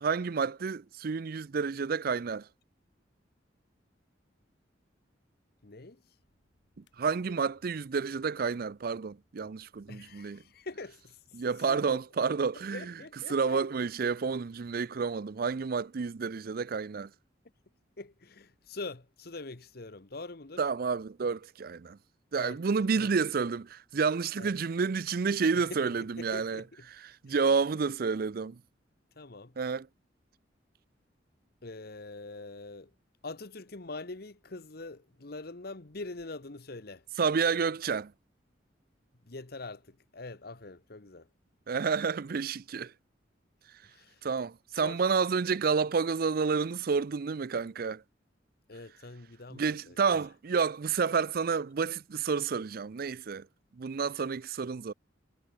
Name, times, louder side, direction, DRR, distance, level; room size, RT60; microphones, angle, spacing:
voice 1, 0.0-2.5 6.8-10.4 11.3-12.9 13.3-17.1 20.6-22.0 22.3-26.6 27.2-28.6 29.6-29.9 37.2-38.1 41.7-42.9 44.2-48.0 49.5-53.5 53.8-54.9, right 5 dB, 50° right, 0.5 m, -30 dB
voice 2, 5.6-6.0 9.9-12.0 12.7-13.6 18.0-20.6 22.4-22.6 23.0-23.1 24.4-24.5 25.5-26.9 27.3-27.4 29.1-29.6 31.6-32.9 33.2-37.0 39.2-41.3 43.8-44.2 44.7-45.0 48.7-50.0, left 3 dB, 55° left, 1.2 m, -44 dB
sound 1, 6.2-12.1, left 1 dB, 75° left, 6.7 m, -73 dB
head